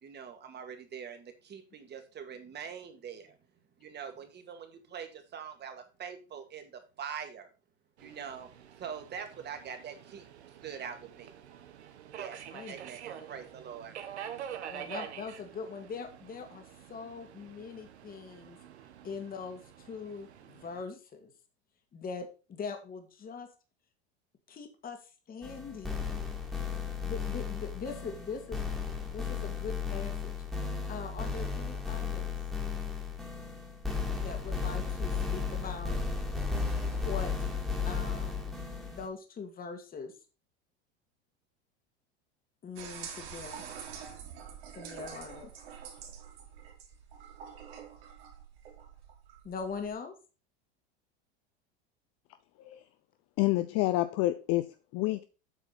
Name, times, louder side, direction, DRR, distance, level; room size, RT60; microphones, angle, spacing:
voice 1, 0.0-3.4 3.8-7.5 8.0-8.5 8.8-10.3 10.6-11.3 12.1-12.4 12.7-14.0, right 7 dB, 30° right, 2.1 m, -43 dB
Subway metro underground, 8.0-20.8, right 9 dB, 90° right, 1.3 m, -47 dB
voice 2, 14.7-16.6 16.9-18.6 19.0-21.3 21.9-23.5 24.5-26.2 27.0-28.6 29.0-30.3 30.9-32.4 34.2-36.0 36.9-37.5 37.8-38.5 38.8-40.1 42.6-43.6 44.7-45.5 49.4-50.1, left 5 dB, 25° left, 1.9 m, -42 dB
sound 1, 25.4-39.1, left 5 dB, ahead, 2.2 m, -34 dB
sound 2, 42.8-49.9, right 7 dB, 70° right, 3.0 m, -46 dB
voice 3, 53.4-55.2, left 17 dB, 50° left, 0.7 m, -28 dB
8.2 x 4.7 x 5.8 m
supercardioid pair, 110°, 32 cm